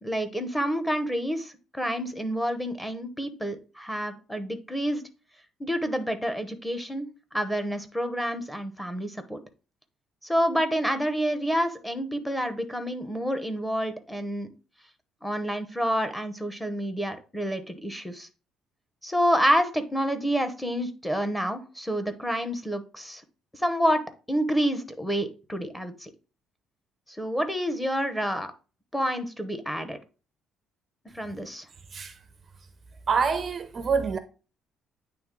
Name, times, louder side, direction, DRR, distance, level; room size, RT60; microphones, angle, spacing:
voice 1, 0.0-5.0 5.6-9.4 10.2-14.5 15.2-18.3 19.0-23.2 23.5-26.1 27.2-28.5 28.9-30.0 31.1-31.6, equal, 5° left, 0.8 m, -28 dB
voice 2, 33.1-34.2, right 5 dB, 35° right, 0.5 m, -26 dB
8.8 x 3.2 x 3.7 m
cardioid pair, 135°, 0 cm